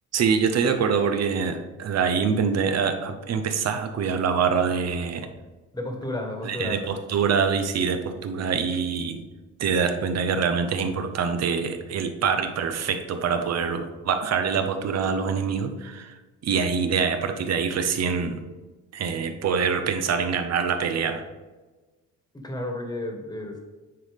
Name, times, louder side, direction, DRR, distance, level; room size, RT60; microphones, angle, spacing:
voice 1, 0.1-5.3 6.4-9.2 9.6-16.2 16.4-18.4 18.9-21.2, right 6 dB, 60° right, 8 dB, 0.8 m, -25 dB
voice 2, 5.7-6.9 22.3-23.6, left 1 dB, 15° left, 2 dB, 1.5 m, -32 dB
9.3 x 4.0 x 3.6 m, 1.3 s
cardioid pair, 90°, 30 cm